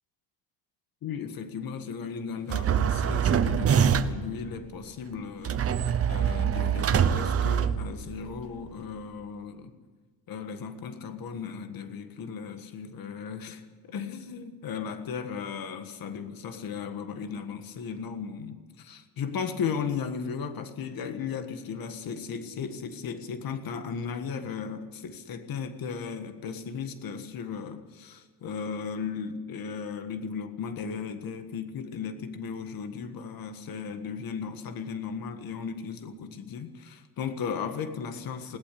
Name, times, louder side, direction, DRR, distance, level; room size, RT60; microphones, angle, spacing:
voice 1, 1.0-9.7 10.3-13.6 13.9-38.6, left 6 dB, 55° left, 9 dB, 1.7 m, -36 dB
sound 1, 2.5-4.3 5.4-8.3, right 8 dB, 35° right, 0.8 m, -24 dB
20.5 x 18.5 x 8.4 m, 1.4 s
cardioid pair, 180°, 43 cm